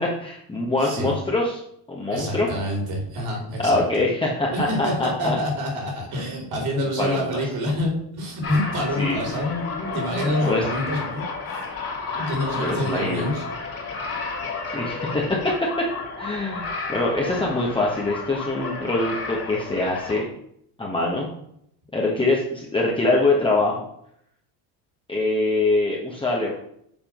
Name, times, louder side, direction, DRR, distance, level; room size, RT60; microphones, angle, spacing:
voice 1, 0.0-1.6 1.9-2.5 3.6-4.7 5.0-5.4 7.0-7.5 8.9-9.2 10.4-10.6 12.6-13.3 14.7-15.2 16.2-20.2 20.8-21.3 21.9-23.8 25.1-26.5, left 2 dB, 10° left, -3 dB, 1.2 m, -24 dB
voice 2, 0.8-1.1 2.1-3.8 4.5-9.5 9.9-11.6 12.2-13.4, equal, 55° right, 0 dB, 3.3 m, -27 dB
sound 1, 8.4-20.2, left 4 dB, 30° left, 2.5 m, -32 dB
7.1 x 3.6 x 5.9 m, 0.71 s
cardioid pair, 115°, 44 cm